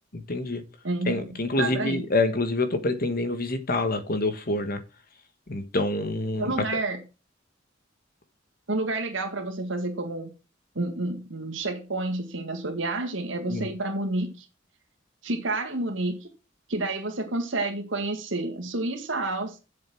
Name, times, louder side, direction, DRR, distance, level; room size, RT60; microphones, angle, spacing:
voice 1, 0.3-0.6 1.1-4.8 5.5-6.5 13.5-13.7, left 2 dB, 50° left, 1.4 m, -26 dB
voice 2, 0.8-2.0 6.4-7.0 8.7-10.3 10.8-14.5 15.2-16.3 16.7-19.6, right 2 dB, 75° right, 1.8 m, -29 dB
7.7 x 6.9 x 6.1 m
head